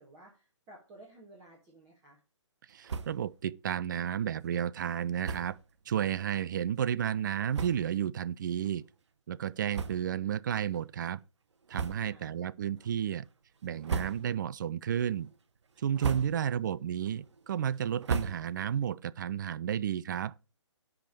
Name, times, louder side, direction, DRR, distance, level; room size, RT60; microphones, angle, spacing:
voice 1, 0.0-2.2 12.0-12.4, right 1 dB, 20° right, 1.6 m, -55 dB
voice 2, 2.7-5.6 5.9-8.8 9.3-11.2 11.7-13.3 13.6-15.3 15.8-20.3, right 9 dB, 40° right, 0.4 m, -32 dB
sound 1, 2.8-3.3 3.7-3.8 4.1-4.2 5.2-5.6 6.4-6.5 7.2-7.3 7.5-8.1 8.6-8.7 9.7-10.4 10.7-10.9 11.7-12.3 12.7-13.2 13.7-14.5 14.9-15.4 15.8-16.6 17.0-18.8, right 5 dB, 65° right, 0.8 m, -37 dB
10.0 x 3.6 x 6.5 m
figure-of-eight pair, 140°, 16 cm